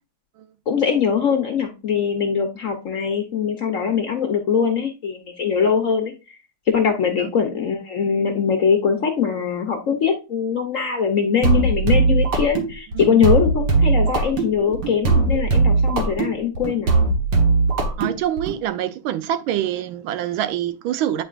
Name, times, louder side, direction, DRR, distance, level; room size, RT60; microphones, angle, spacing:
voice 1, 0.7-6.4 6.7-16.9, left 7 dB, 60° left, 0.9 m, -22 dB
sound 1, 11.4-18.6, right 3 dB, 60° right, 1.8 m, -19 dB
voice 2, 18.0-21.2, right 11 dB, 85° right, 1.4 m, -25 dB
8.8 x 4.5 x 2.4 m
omnidirectional pair, 2.2 m